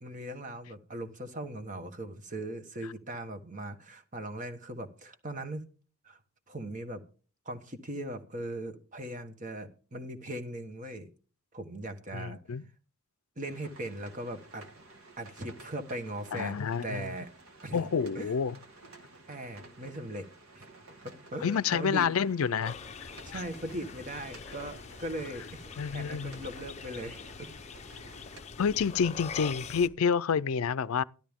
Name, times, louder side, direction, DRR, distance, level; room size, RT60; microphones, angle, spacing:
voice 1, 0.0-5.7 6.0-6.2 6.5-7.0 7.4-11.1 11.5-12.4 13.4-14.7 15.2-17.3 17.6-17.9 18.1-18.3 19.3-20.3 20.5-20.7 21.0-22.1 23.2-25.6 25.9-27.5, right 1 dB, 35° right, 1.3 m, -39 dB
voice 2, 12.1-12.6 16.3-17.1 17.7-18.6 21.4-22.7 23.0-23.4 25.8-26.4 28.6-31.0, left 6 dB, 75° left, 0.4 m, -29 dB
sound 1, 13.4-28.4, right 2 dB, 75° right, 1.9 m, -53 dB
sound 2, 22.6-29.9, left 5 dB, 30° left, 0.6 m, -44 dB
13.0 x 12.5 x 3.6 m
head